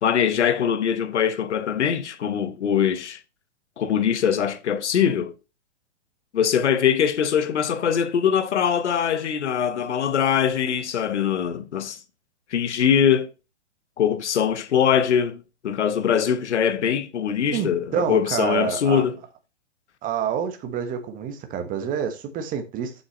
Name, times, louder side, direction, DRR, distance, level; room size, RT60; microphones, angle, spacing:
voice 1, 0.0-3.2 3.8-5.3 6.3-12.0 12.5-13.3 14.0-19.2, left 8 dB, 70° left, 1.1 m, -22 dB
voice 2, 17.5-19.0 20.0-22.9, right 8 dB, 25° right, 1.3 m, -27 dB
7.3 x 6.4 x 3.1 m
hypercardioid pair, 125°, 36 cm